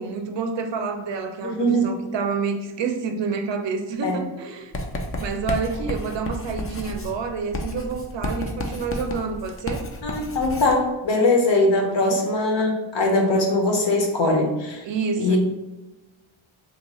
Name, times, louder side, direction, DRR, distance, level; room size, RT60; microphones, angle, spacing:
voice 1, 0.0-4.7 5.2-9.9 11.8-12.2 14.8-15.4, right 5 dB, 65° right, 6 dB, 0.5 m, -28 dB
voice 2, 1.4-1.9 4.0-4.2 10.0-14.8 15.2-15.4, left 2 dB, 65° left, 0 dB, 0.9 m, -21 dB
Writing, 4.7-10.8, left 1 dB, 30° left, 0.4 m, -31 dB
2.9 x 2.3 x 4.1 m, 1.1 s
wide cardioid pair, 140°, 48 cm